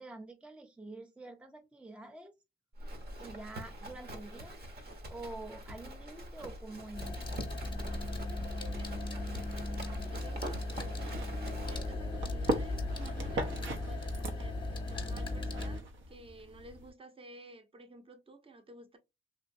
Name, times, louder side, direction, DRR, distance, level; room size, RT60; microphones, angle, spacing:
voice 1, 0.0-2.4 3.2-4.6 5.1-7.3, right 2 dB, 5° right, 0.4 m, -47 dB
Livestock farm animals working animals, 2.8-13.5, right 1 dB, 50° right, 1.1 m, -45 dB
sound 1, 6.9-15.8, left 2 dB, 25° left, 0.8 m, -37 dB
voice 2, 8.6-11.3 11.6-19.0, right 2 dB, 30° right, 0.8 m, -53 dB
sound 2, 11.0-16.9, right 1 dB, 75° right, 1.0 m, -40 dB
3.2 x 2.9 x 2.6 m
cardioid pair, 90°, 20 cm